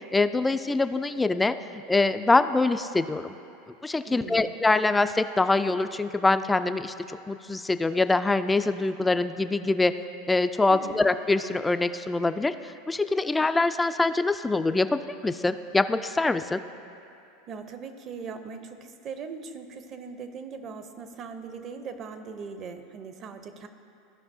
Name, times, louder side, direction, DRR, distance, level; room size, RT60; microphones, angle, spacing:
voice 1, 0.1-1.5 1.9-3.3 3.8-9.9 10.3-12.5 12.9-14.9 15.2-16.6, left 3 dB, 10° left, 11 dB, 0.3 m, -24 dB
voice 2, 4.1-4.5 10.7-11.0 17.5-23.7, right 5 dB, 40° right, 8 dB, 0.7 m, -40 dB
15.0 x 5.3 x 2.7 m, 2.7 s
hypercardioid pair, 105°, 0 cm